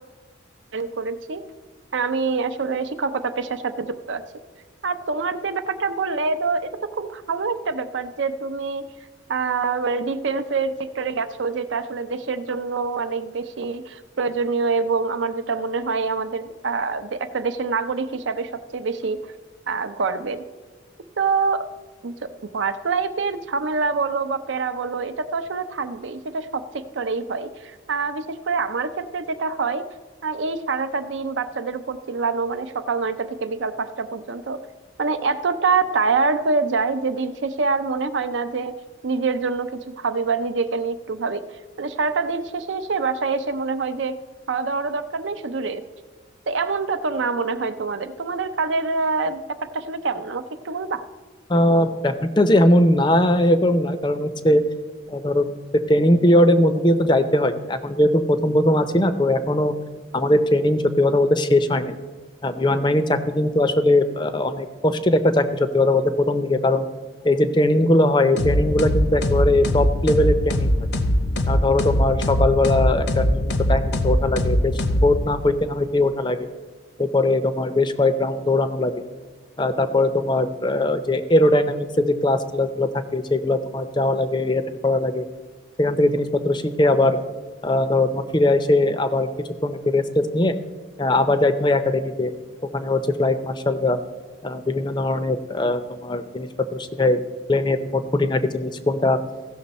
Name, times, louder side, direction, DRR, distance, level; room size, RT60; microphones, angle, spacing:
voice 1, 0.7-1.4 1.9-4.2 4.8-8.9 9.3-19.2 19.7-20.4 21.2-21.7 22.0-29.9 30.2-34.6 35.0-38.7 39.0-41.4 41.8-44.2 44.5-45.8 46.5-51.0, right 4 dB, 75° right, 11 dB, 0.6 m, -25 dB
voice 2, 51.5-54.6 55.1-55.5 55.9-59.7 60.1-61.9 62.4-66.9 67.2-70.8 71.4-76.5 77.0-79.0 79.6-85.2 85.8-87.2 87.6-89.3 89.6-90.5 91.0-92.3 92.7-94.0 94.4-97.2 97.5-99.2, left 1 dB, 25° left, 10 dB, 0.5 m, -20 dB
sound 1, 68.4-75.5, left 1 dB, 60° left, 0.8 m, -22 dB
15.5 x 6.2 x 4.2 m, 1.4 s
head